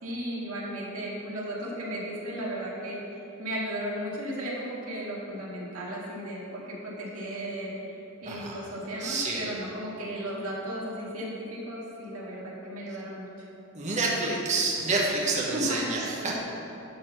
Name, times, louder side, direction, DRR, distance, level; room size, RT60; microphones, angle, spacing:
voice 1, 0.0-8.0 8.2-13.3 15.5-16.2, equal, 75° right, -5 dB, 2.0 m, -35 dB
voice 2, 8.3-8.6 9.0-9.4 13.7-16.4, right 3 dB, 30° right, -3 dB, 1.1 m, -28 dB
11.0 x 4.0 x 6.6 m, 2.9 s
head